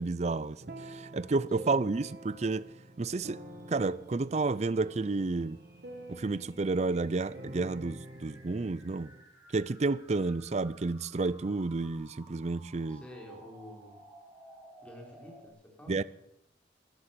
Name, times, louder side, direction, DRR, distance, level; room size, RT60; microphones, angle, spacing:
voice 1, 0.0-2.7 3.0-3.4 3.7-5.6 6.1-9.1 9.5-13.0 15.9-16.0, right 3 dB, 35° right, 0.5 m, -31 dB
sound 1, 0.6-9.2, right 1 dB, 55° right, 2.2 m, -48 dB
sound 2, 3.6-15.5, right 1 dB, 20° right, 3.1 m, -57 dB
voice 2, 12.9-14.0 14.8-16.0, left 1 dB, 5° left, 4.0 m, -49 dB
13.0 x 12.0 x 8.4 m
head